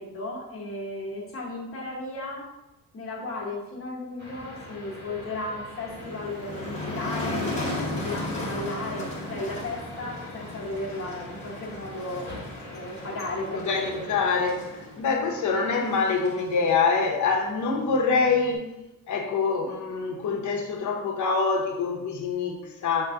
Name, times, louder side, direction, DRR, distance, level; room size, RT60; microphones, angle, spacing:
voice 1, 0.0-2.5 2.9-12.3 12.7-14.0, left 2 dB, 40° left, -3 dB, 1.1 m, -35 dB
sound 1, 4.2-15.0, left 1 dB, 30° right, 1.2 m, -43 dB
Motor vehicle (road), 5.9-18.6, left 1 dB, 20° left, 1.2 m, -36 dB
voice 2, 13.5-18.7 19.1-23.1, left 4 dB, 55° left, 1 dB, 0.8 m, -25 dB
5.7 x 2.5 x 3.7 m, 0.97 s
wide cardioid pair, 175°, 35 cm